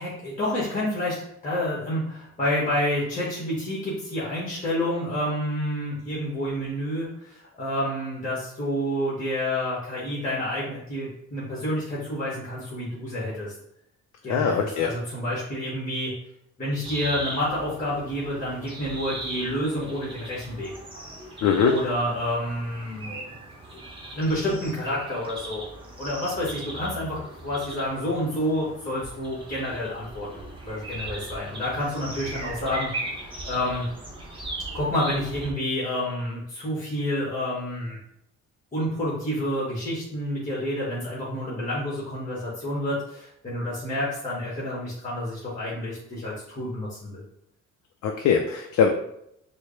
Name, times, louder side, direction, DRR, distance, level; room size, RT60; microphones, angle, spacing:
voice 1, 0.0-13.5 14.2-16.1 16.6-20.7 21.6-23.2 24.1-25.7 26.0-32.9 33.2-33.9 34.7-38.0 38.7-47.2, left 1 dB, 25° left, -6 dB, 1.4 m, -29 dB
voice 2, 14.3-14.9 21.4-21.8 48.0-48.9, left 6 dB, 70° left, 3 dB, 0.5 m, -21 dB
sound 1, 16.8-35.5, right 2 dB, 15° right, 1.1 m, -38 dB
4.6 x 2.2 x 3.2 m, 0.76 s
cardioid pair, 90°, 30 cm